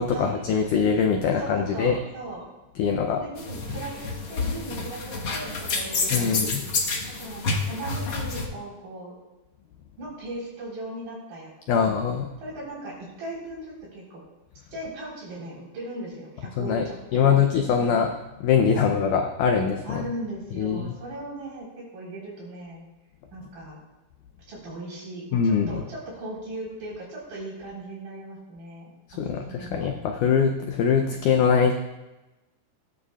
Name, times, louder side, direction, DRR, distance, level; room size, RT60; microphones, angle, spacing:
voice 1, 0.0-2.0 2.8-3.2 6.1-6.6 11.7-12.3 16.6-16.9 17.1-18.1 18.4-20.0 20.6-21.0 25.3-25.8 29.2-31.7, left 6 dB, 80° left, 3 dB, 1.8 m, -22 dB
voice 2, 1.2-2.4 3.1-6.6 7.2-9.2 10.0-11.8 12.4-14.2 14.7-17.5 17.8-17.9 18.7-19.0 19.8-22.8 23.3-23.8 24.5-30.1, right 1 dB, 65° right, -5 dB, 6.0 m, -38 dB
sound 1, 3.4-8.5, left 3 dB, 60° left, 1.3 m, -29 dB
17.0 x 11.0 x 2.4 m, 1.1 s
omnidirectional pair, 4.4 m